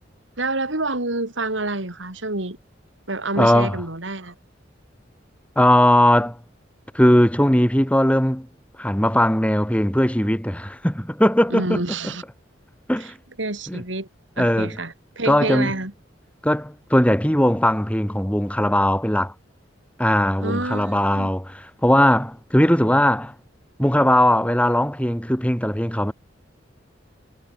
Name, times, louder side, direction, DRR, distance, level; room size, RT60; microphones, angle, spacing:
voice 1, 0.4-2.6 3.1-4.3 11.5-12.2 13.0-13.1 13.4-14.1 14.4-15.9 20.4-21.3, right 2 dB, 80° right, 4.2 m, -27 dB
voice 2, 3.4-3.8 5.5-6.4 6.9-8.5 8.8-11.8 12.9-13.2 13.7-13.8 14.4-14.8 15.3-15.7 16.4-19.3 20.0-23.3 23.8-26.1, left 1 dB, 5° left, 5.0 m, -19 dB
head